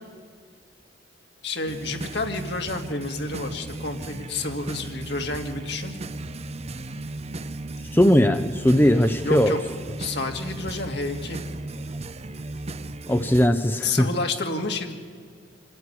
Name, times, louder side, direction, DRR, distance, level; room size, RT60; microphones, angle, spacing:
voice 1, 1.4-6.0 9.2-9.6 10.0-11.4 13.8-14.9, left 3 dB, 65° left, 3 dB, 2.4 m, -30 dB
sound 1, 1.6-13.5, right 2 dB, 35° right, 0.7 m, -35 dB
voice 2, 7.9-9.5 13.1-14.1, equal, 10° left, 8 dB, 0.7 m, -19 dB
27.0 x 14.5 x 9.8 m, 2.1 s
head